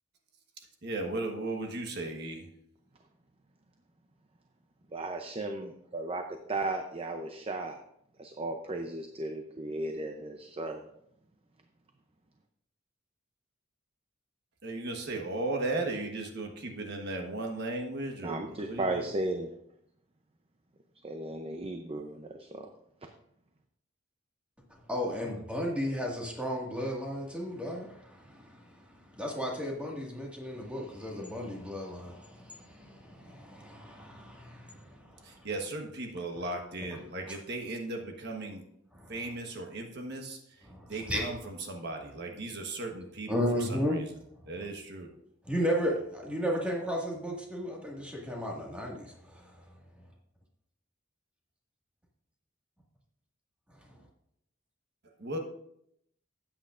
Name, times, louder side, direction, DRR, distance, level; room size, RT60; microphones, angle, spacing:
voice 1, 0.8-2.5 14.6-19.0 35.2-38.6 39.1-44.0 44.5-45.2 55.2-55.4, right 2 dB, 55° right, 2 dB, 1.3 m, -36 dB
voice 2, 4.9-7.8 8.2-10.8 18.2-19.5 21.0-22.7 23.0-23.1, right 2 dB, 30° right, 5 dB, 0.6 m, -35 dB
voice 3, 24.9-35.5 39.0-39.2 40.7-41.2 43.3-44.0 45.5-49.5, equal, 5° right, -2 dB, 1.9 m, -34 dB
13.0 x 8.8 x 2.5 m, 0.74 s
head